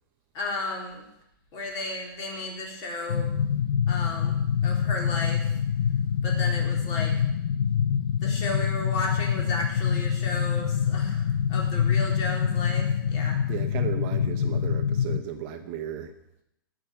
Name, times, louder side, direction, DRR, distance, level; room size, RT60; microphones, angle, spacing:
voice 1, 0.3-1.0 1.5-3.3 3.9-4.4 4.6-5.5 6.2-7.1 8.2-13.4, left 2 dB, 35° left, 0 dB, 4.1 m, -34 dB
sound 1, 3.1-15.2, left 8 dB, 60° left, 0.8 m, -25 dB
voice 2, 13.5-16.1, right 9 dB, 35° right, 6 dB, 1.0 m, -35 dB
18.5 x 6.3 x 7.0 m, 0.81 s
hypercardioid pair, 150°, 12 cm